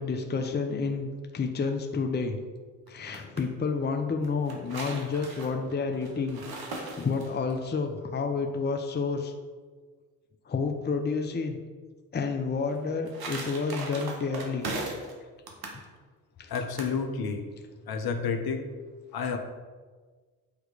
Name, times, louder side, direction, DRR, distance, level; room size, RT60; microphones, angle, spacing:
voice 1, 0.0-2.4 2.9-6.4 6.7-9.3 10.5-11.6 12.1-14.7 15.7-15.8 16.4-16.6, left 4 dB, 20° left, 4 dB, 0.7 m, -30 dB
sound 1, 2.9-3.4 4.2-7.5 12.7-15.1 15.5-15.8 16.6-17.0, right 3 dB, 50° right, 1.4 m, -38 dB
voice 2, 16.5-17.5 17.9-18.7 19.1-19.4, left 5 dB, 50° left, 5 dB, 0.9 m, -30 dB
8.5 x 3.1 x 5.0 m, 1.5 s
hypercardioid pair, 50°, 47 cm